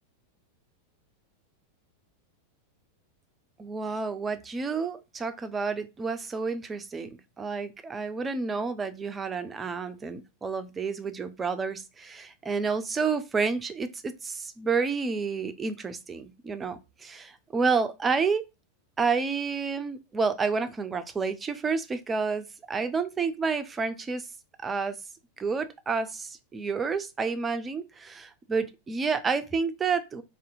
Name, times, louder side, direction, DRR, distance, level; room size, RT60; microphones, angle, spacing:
voice 1, 3.6-7.1 7.4-18.4 19.0-24.3 24.6-25.0 25.4-30.2, right 5 dB, 15° right, 0.4 m, -30 dB
2.7 x 2.1 x 2.6 m
figure-of-eight pair, 90°, 0 cm